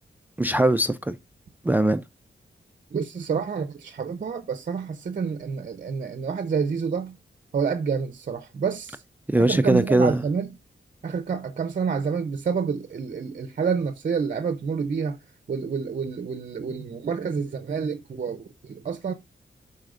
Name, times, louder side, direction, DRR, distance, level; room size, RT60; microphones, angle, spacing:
voice 1, 0.4-1.2 1.6-2.0 9.3-10.2, right 1 dB, 10° right, 0.3 m, -20 dB
voice 2, 2.9-7.2 7.5-9.0 9.4-10.5 11.0-15.2 15.5-19.1, right 6 dB, 50° right, 0.6 m, -28 dB
11.0 x 4.2 x 2.5 m
wide cardioid pair, 105°, 19 cm